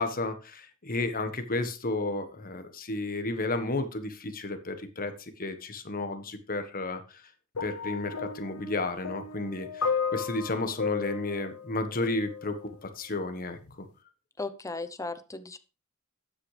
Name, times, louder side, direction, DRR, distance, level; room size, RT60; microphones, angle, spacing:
voice 1, 0.0-7.0 7.6-13.9, left 2 dB, 40° left, 8 dB, 1.4 m, -32 dB
sound 1, 7.5-12.7 13.6-13.7, left 6 dB, 80° left, 1.0 m, -34 dB
voice 2, 14.4-15.6, left 3 dB, 15° left, 10 dB, 0.8 m, -36 dB
12.5 x 9.1 x 3.4 m, 0.31 s
head